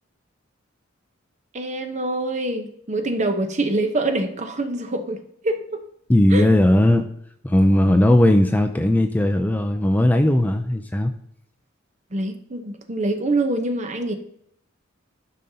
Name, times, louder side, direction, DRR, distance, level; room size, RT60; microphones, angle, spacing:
voice 1, 1.5-5.2 5.4-5.8 6.3-6.5 12.1-14.1, right 2 dB, 35° right, 6 dB, 0.8 m, -25 dB
voice 2, 6.1-7.1 7.4-11.1, left 1 dB, 10° left, 6 dB, 0.4 m, -17 dB
12.5 x 5.3 x 2.8 m, 0.73 s
head